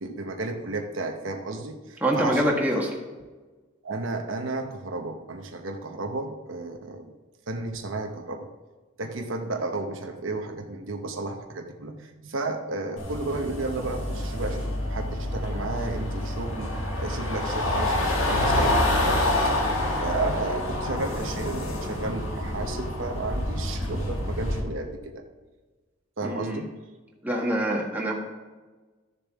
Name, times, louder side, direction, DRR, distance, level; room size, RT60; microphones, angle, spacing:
voice 1, 0.0-2.6 3.8-7.1 7.5-8.5 9.0-16.7 17.0-25.2 26.2-26.7, right 2 dB, 75° right, 4 dB, 0.9 m, -33 dB
voice 2, 2.0-2.9 26.2-26.6 27.2-28.1, right 1 dB, 10° right, -2 dB, 1.4 m, -25 dB
sound 1, 13.0-24.6, left 1 dB, 80° left, 1.7 m, -27 dB
13.5 x 6.9 x 3.6 m, 1.3 s
head